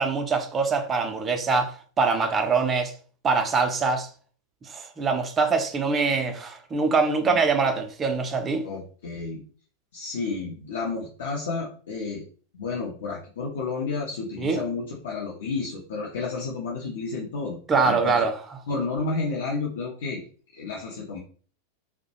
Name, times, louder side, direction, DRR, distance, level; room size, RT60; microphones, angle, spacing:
voice 1, 0.0-2.9 3.2-4.1 4.6-8.7 14.4-14.6 17.7-18.6, right 4 dB, 20° right, 0.4 m, -24 dB
voice 2, 8.6-9.4 9.9-12.2 12.5-17.6 17.8-18.3 18.7-20.2 20.5-21.2, left 4 dB, 60° left, 0.5 m, -31 dB
2.2 x 2.0 x 2.8 m
figure-of-eight pair, 90°, 0 cm